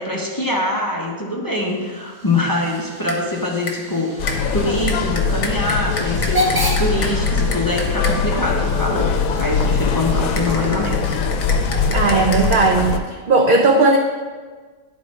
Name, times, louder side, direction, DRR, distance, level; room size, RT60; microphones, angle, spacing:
voice 1, 0.0-11.1, left 1 dB, 20° left, -3 dB, 0.6 m, -23 dB
Hiss / Train / Alarm, 1.6-11.3, equal, 20° right, 0.9 m, -32 dB
sound 1, 2.6-2.8 3.1-3.3 3.7-4.0 4.3-8.4 10.4-12.7, left 3 dB, 65° left, 1.2 m, -31 dB
sound 2, 4.2-13.0, left 5 dB, 90° left, 1.0 m, -21 dB
voice 2, 11.9-14.0, right 3 dB, 70° right, 3 dB, 0.5 m, -16 dB
10.5 x 4.3 x 3.2 m, 1.5 s
omnidirectional pair, 1.4 m